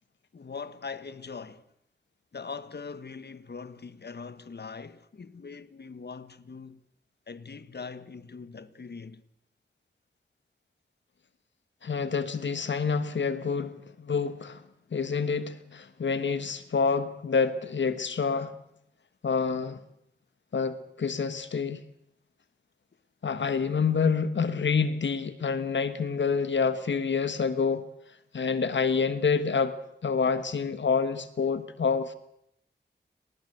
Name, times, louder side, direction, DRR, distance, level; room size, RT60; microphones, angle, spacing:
voice 1, 0.3-1.6 2.3-6.8 7.3-9.2 16.9-17.0, left 5 dB, 65° left, 1.5 m, -41 dB
voice 2, 11.8-14.6 14.9-18.5 19.2-19.8 20.5-21.8 23.2-27.9 28.3-32.1, left 5 dB, 85° left, 1.4 m, -27 dB
30.0 x 19.5 x 8.0 m
cardioid pair, 55°, 18 cm